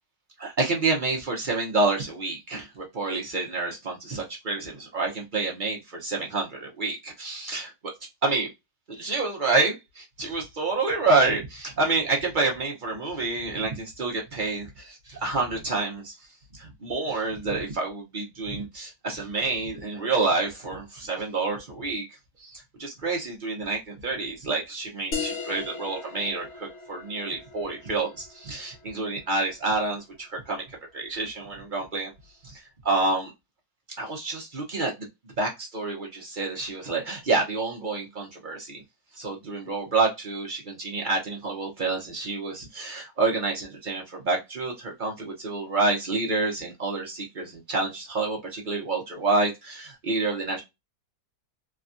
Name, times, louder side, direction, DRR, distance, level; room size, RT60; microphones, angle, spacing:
voice 1, 0.4-7.9 8.2-8.5 8.9-16.1 16.5-32.1 32.4-33.3 34.0-38.8 39.1-50.6, right 3 dB, 55° right, -1 dB, 0.5 m, -28 dB
sound 1, 25.1-30.2, left 5 dB, 65° left, 0.7 m, -38 dB
3.4 x 2.2 x 2.5 m, 0.21 s
omnidirectional pair, 2.0 m